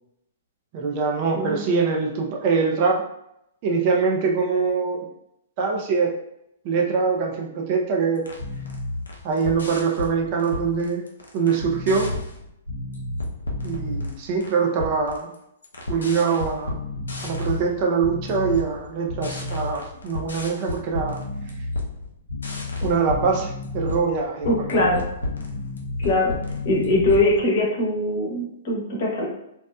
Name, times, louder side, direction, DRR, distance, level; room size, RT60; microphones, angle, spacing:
voice 1, 0.7-3.0 3.6-5.0 5.6-6.1 6.6-8.2 9.2-11.0 11.3-12.1 13.6-15.3 15.9-16.8 17.2-21.2 22.8-24.9, right 5 dB, 45° right, 0 dB, 0.5 m, -23 dB
sound 1, 8.2-14.5 14.8-15.4 15.6-27.5, left 2 dB, 80° left, 0.5 m, -31 dB
voice 2, 24.4-25.0 26.0-26.3 26.6-29.3, left 1 dB, 55° left, -3 dB, 0.9 m, -22 dB
2.8 x 2.0 x 2.2 m, 0.78 s
hypercardioid pair, 120°, 0 cm